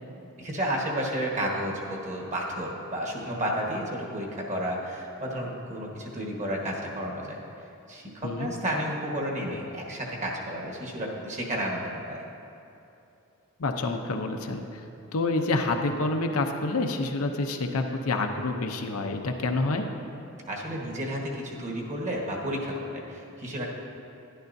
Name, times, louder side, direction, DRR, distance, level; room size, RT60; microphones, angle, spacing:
voice 1, 0.4-7.4 7.9-12.2 20.5-23.7, equal, 35° right, -1 dB, 1.3 m, -32 dB
voice 2, 13.6-14.8 15.1-19.9, left 2 dB, 80° left, 4 dB, 0.7 m, -28 dB
11.5 x 10.5 x 2.7 m, 2.9 s
head